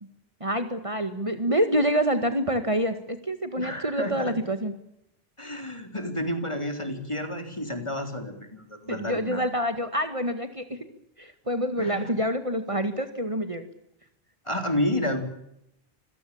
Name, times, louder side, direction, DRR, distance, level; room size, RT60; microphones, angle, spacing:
voice 1, 0.4-4.7 8.9-10.9 11.2-13.6, equal, 30° right, 9 dB, 2.0 m, -27 dB
voice 2, 3.6-4.3 5.4-9.4 11.8-12.1 14.5-15.2, left 1 dB, 30° left, 7 dB, 4.0 m, -30 dB
26.5 x 17.5 x 8.8 m, 0.79 s
omnidirectional pair, 1.0 m